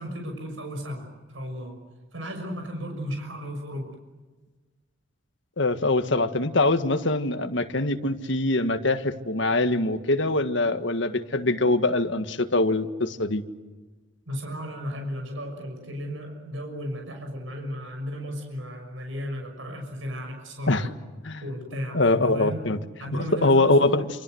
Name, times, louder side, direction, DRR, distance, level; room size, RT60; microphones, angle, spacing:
voice 1, 0.0-1.8 2.1-3.8 14.3-20.9 21.4-22.7 23.0-24.0, equal, 75° right, 3 dB, 6.4 m, -34 dB
voice 2, 5.6-13.4 20.7-20.9 21.2-21.4 21.9-22.8 23.1-24.1, left 2 dB, 65° left, 8 dB, 1.7 m, -23 dB
27.5 x 27.0 x 7.9 m, 1.3 s
head